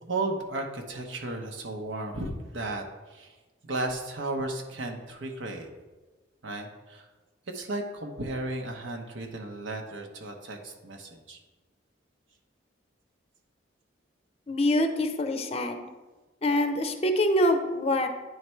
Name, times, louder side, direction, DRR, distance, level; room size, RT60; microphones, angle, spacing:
voice 1, 0.0-2.8 3.1-3.3 3.6-5.7 6.4-7.1 7.5-11.4, right 2 dB, 85° right, 3 dB, 0.9 m, -34 dB
voice 2, 14.5-15.9 16.4-18.1, left 1 dB, 35° left, 6 dB, 0.5 m, -25 dB
9.3 x 3.3 x 4.4 m, 1.2 s
head